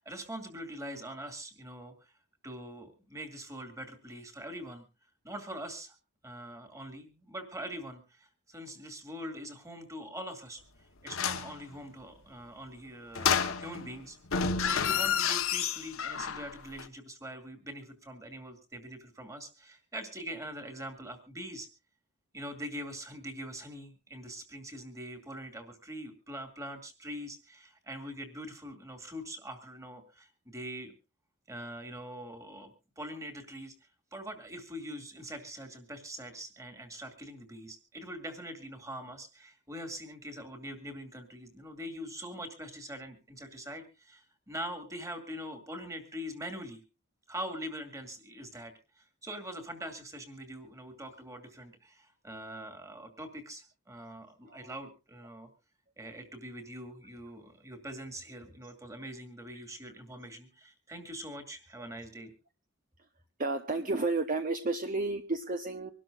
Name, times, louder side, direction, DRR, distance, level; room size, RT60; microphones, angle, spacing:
voice 1, 0.0-2.1 2.4-4.9 5.2-6.0 6.2-10.6 11.0-14.2 14.6-21.7 22.3-30.9 31.5-46.8 47.3-55.5 56.0-62.3, equal, 15° right, 6 dB, 2.3 m, -43 dB
sound 1, 11.1-11.5 13.1-13.9 14.3-16.5 16.8-16.9, left 7 dB, 70° left, 1.2 m, -30 dB
voice 2, 63.4-65.9, right 3 dB, 40° right, 6 dB, 0.9 m, -31 dB
25.0 x 12.5 x 2.5 m, 0.31 s
head